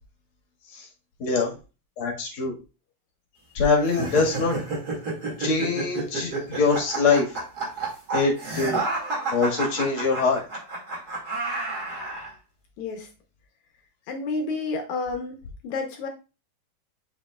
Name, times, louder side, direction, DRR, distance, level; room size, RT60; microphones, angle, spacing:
voice 1, 1.2-1.5 2.0-2.5 3.5-4.5 5.4-7.3 8.1-8.8 9.3-10.4, left 4 dB, 45° left, 0 dB, 2.3 m, -23 dB
sound 1, 3.8-12.3, right 3 dB, 30° right, 2.4 m, -30 dB
voice 2, 12.8-13.1 14.1-15.4 15.6-16.1, left 3 dB, 70° left, 4 dB, 2.0 m, -30 dB
7.1 x 6.0 x 2.4 m, 0.30 s
omnidirectional pair, 3.9 m